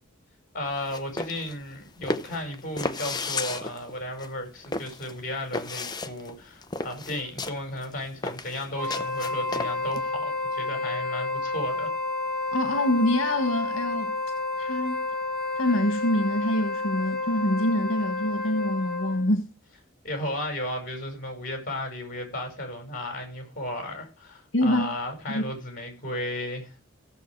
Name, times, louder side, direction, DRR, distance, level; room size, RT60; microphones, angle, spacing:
voice 1, 0.5-11.9 20.0-26.8, left 1 dB, 45° left, 5.6 m, -34 dB
sound 1, 0.7-10.0, left 3 dB, 20° left, 0.7 m, -34 dB
Wind instrument woodwind instrument, 8.7-19.3, left 3 dB, ahead, 3.7 m, -30 dB
voice 2, 12.5-14.2 14.6-15.0 15.5-19.5 24.5-24.9 25.3-25.4, left 1 dB, 75° left, 1.6 m, -25 dB
15.5 x 7.4 x 4.7 m
head